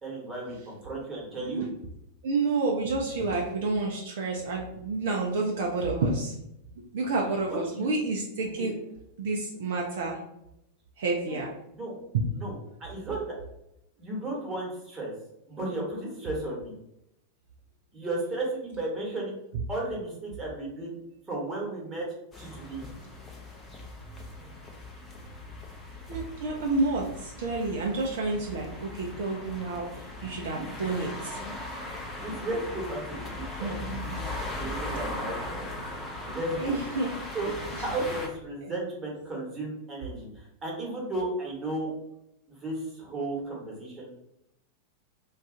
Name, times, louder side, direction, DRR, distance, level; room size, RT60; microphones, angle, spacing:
voice 1, 0.0-1.6 7.7-7.9 8.4-8.7 11.3-11.5 11.7-12.0 12.3-12.5 12.8-13.3 14.0-15.1 15.5-16.7 17.9-19.4 19.7-21.0 21.3-22.1 22.4-22.8 30.4-30.7 31.3-31.5 32.2-35.8 36.2-36.8 37.3-41.9 42.5-44.1, right 2 dB, 20° right, -3 dB, 1.1 m, -34 dB
voice 2, 1.4-1.7 2.2-6.3 6.8-8.7 9.2-10.2 11.0-11.5 12.1-12.3 26.1-31.4 33.6-34.2 36.6-37.1 38.6-38.8, right 3 dB, 55° right, 0 dB, 0.4 m, -29 dB
sound 1, 22.3-38.3, left 2 dB, 15° left, 0.6 m, -39 dB
2.4 x 2.3 x 3.7 m, 0.81 s
figure-of-eight pair, 90°, 0 cm